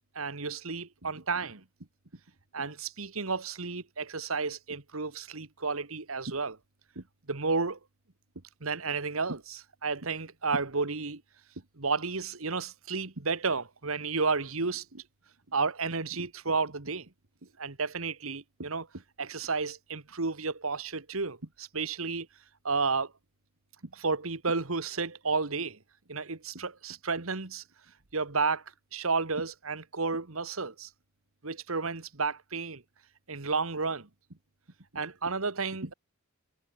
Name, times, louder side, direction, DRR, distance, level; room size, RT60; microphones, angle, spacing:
voice 1, 0.2-1.6 2.5-6.6 7.0-7.8 8.6-11.2 11.8-15.0 15.5-17.1 17.6-22.3 22.6-23.1 23.9-25.8 26.1-27.6 28.1-28.6 28.9-30.9 31.4-32.8 33.3-34.1 34.9-35.9, right 4 dB, 80° right, 1.8 m, -32 dB
head